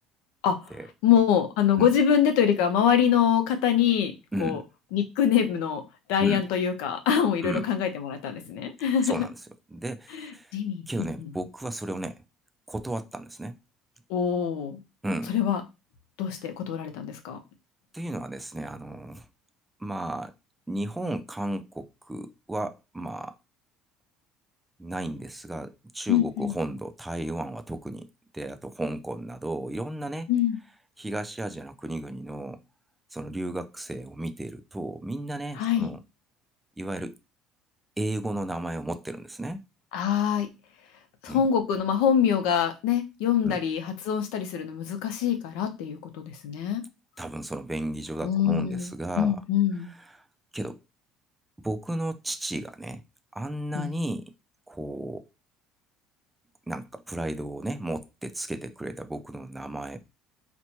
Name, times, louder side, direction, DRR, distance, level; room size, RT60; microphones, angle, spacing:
voice 1, 1.0-4.1 4.4-4.6 4.9-5.8 6.1-9.3 10.1-10.9 11.2-11.3 14.1-14.8 15.3-15.6 16.2-17.4 26.1-26.5 30.3-30.6 35.6-35.9 39.9-40.5 41.2-46.8 48.2-48.9 49.2-49.9 53.7-54.0, left 8 dB, 90° left, 0.7 m, -24 dB
voice 2, 4.3-4.6 6.2-6.5 7.4-7.7 9.0-9.4 9.7-10.5 10.9-12.2 12.7-13.6 15.0-15.3 17.9-19.3 19.8-20.3 20.7-23.4 24.8-28.1 28.3-30.3 31.0-32.6 33.1-36.0 36.8-37.2 38.0-39.6 41.3-41.5 43.4-43.6 47.2-49.4 50.1-50.2 50.5-50.8 51.6-53.0 53.3-54.3 54.7-55.3 56.7-60.0, right 1 dB, 5° right, 0.3 m, -34 dB
4.2 x 2.2 x 2.9 m
cardioid pair, 155°, 0 cm